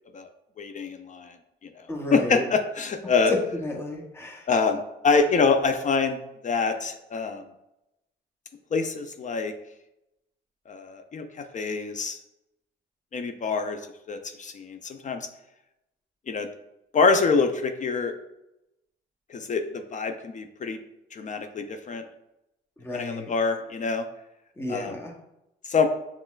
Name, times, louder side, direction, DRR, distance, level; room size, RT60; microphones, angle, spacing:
voice 1, 0.6-1.4 2.1-3.3 4.5-6.2 6.4-7.4 8.7-9.5 10.7-11.2 11.5-12.2 13.1-13.8 14.1-15.2 16.3-16.5 16.9-18.1 19.3-20.8 21.1-22.0 22.9-24.0 24.7-24.9 25.7-25.9, left 4 dB, 40° left, 6 dB, 0.4 m, -25 dB
voice 2, 1.9-2.4 3.3-4.5 22.8-23.3 24.6-25.1, left 2 dB, 10° left, 1 dB, 0.8 m, -31 dB
5.3 x 3.1 x 2.4 m, 0.88 s
cardioid pair, 90°, 20 cm